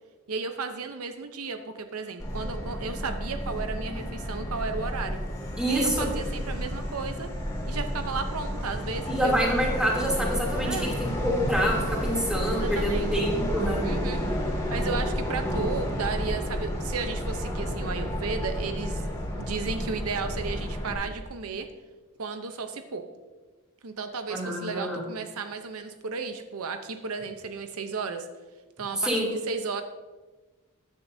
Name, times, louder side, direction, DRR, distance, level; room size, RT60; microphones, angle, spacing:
voice 1, 0.3-5.2 5.7-7.3 7.7-9.4 10.6-10.9 12.5-13.2 13.8-14.2 14.7-19.0 19.3-21.7 22.2-23.0 23.8-28.3 28.8-29.8, right 4 dB, 85° right, 7 dB, 0.8 m, -34 dB
Subway metro underground, 2.2-20.9, equal, 15° left, 2.1 m, -31 dB
voice 2, 5.6-6.1 9.1-13.8 24.3-25.0 29.0-29.3, equal, 5° right, -3 dB, 2.9 m, -27 dB
14.0 x 10.0 x 2.7 m, 1.3 s
head